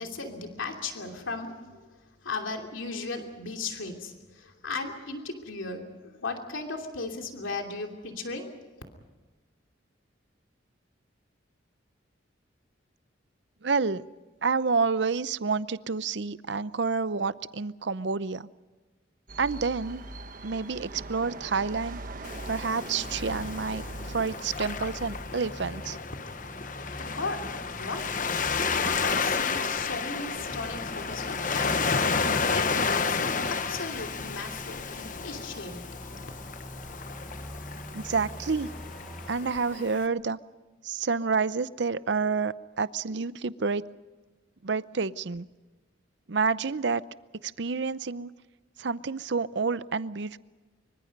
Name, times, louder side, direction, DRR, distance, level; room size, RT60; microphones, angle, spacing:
voice 1, 0.0-1.8 2.2-8.5 26.8-27.5 27.7-28.1 28.4-32.2 32.5-33.2 33.5-35.8, left 3 dB, 85° left, 3 dB, 2.9 m, -36 dB
voice 2, 13.6-14.1 14.4-18.5 19.4-20.0 20.4-22.0 22.5-26.0 37.9-38.7 39.3-40.4 40.8-43.8 44.6-45.5 46.3-47.0 47.4-48.3 48.8-50.4, right 4 dB, 65° right, 16 dB, 0.6 m, -29 dB
sound 1, 19.3-25.3, right 2 dB, 45° right, 1.4 m, -41 dB
Waves surf, 22.2-40.1, left 5 dB, 40° left, 1.0 m, -32 dB
sound 2, 23.0-39.4, equal, ahead, 1.1 m, -44 dB
25.0 x 24.5 x 5.4 m, 1.3 s
head